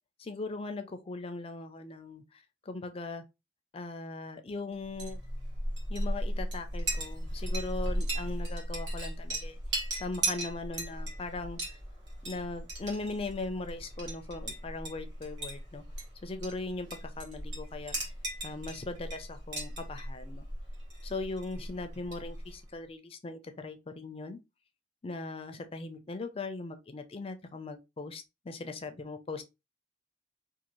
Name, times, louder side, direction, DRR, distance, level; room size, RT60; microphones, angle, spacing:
voice 1, 0.2-3.2 3.7-5.2 5.9-9.6 10.0-11.8 12.2-15.8 16.2-18.1 18.4-20.5 21.0-24.4 25.0-29.4, left 3 dB, 30° left, 0.4 m, -39 dB
Chink clink, 4.8-22.6, right 1 dB, 65° right, 1.2 m, -37 dB
2.6 x 2.4 x 2.9 m
head